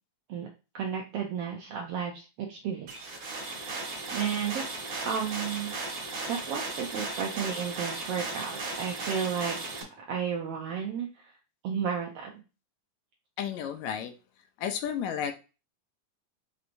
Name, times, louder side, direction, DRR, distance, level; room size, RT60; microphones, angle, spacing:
voice 1, 0.3-3.1 3.9-4.6 5.0-5.7 6.3-9.6 10.0-11.3 11.6-12.4, right 7 dB, 80° right, 1.3 m, -33 dB
sound 1, 2.9-9.8, right 3 dB, 45° right, 1.7 m, -36 dB
voice 2, 13.4-14.1 14.6-15.3, left 8 dB, 80° left, 1.9 m, -32 dB
6.2 x 2.9 x 2.5 m
omnidirectional pair, 3.4 m